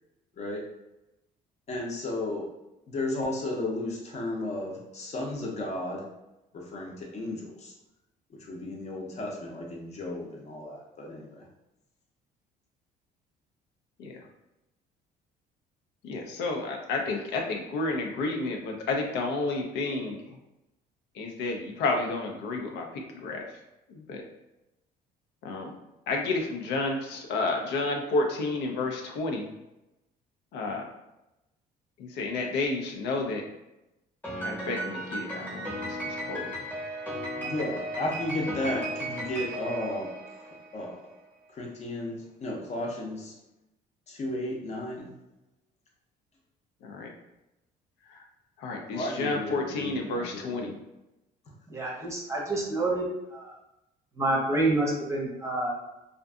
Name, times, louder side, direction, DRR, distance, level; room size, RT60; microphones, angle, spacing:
voice 1, 1.7-2.5 2.9-6.0 6.5-7.7 8.4-11.4 37.4-40.1 40.7-41.0 41.5-43.3 44.1-45.1 48.9-50.7, left 1 dB, 40° left, -1 dB, 0.6 m, -34 dB
voice 2, 16.0-20.2 21.2-23.4 23.9-24.2 25.4-25.7 26.1-29.5 30.5-30.8 32.0-33.4 34.4-35.7 36.3-36.5 46.8-47.1 48.1-48.2 48.6-50.7, left 3 dB, 85° left, 2 dB, 0.5 m, -30 dB
Piano, 34.2-40.8, right 1 dB, 10° left, 0.9 m, -35 dB
voice 3, 51.7-53.0 53.3-53.5 54.2-55.8, right 2 dB, 15° right, -3 dB, 0.7 m, -28 dB
2.5 x 2.4 x 2.3 m, 0.94 s
cardioid pair, 110°, 17 cm